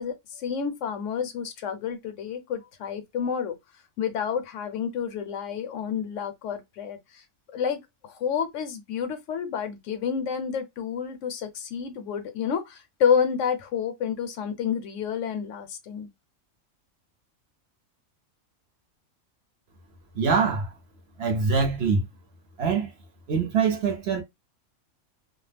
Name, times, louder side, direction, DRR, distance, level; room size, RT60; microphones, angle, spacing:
voice 1, 0.0-3.5 4.0-7.2 7.5-16.1, left 7 dB, 70° left, 0.9 m, -29 dB
voice 2, 20.1-20.7 21.2-22.1 22.6-22.9 23.3-24.2, right 5 dB, 60° right, 0.8 m, -24 dB
2.3 x 2.1 x 3.3 m
omnidirectional pair, 1.4 m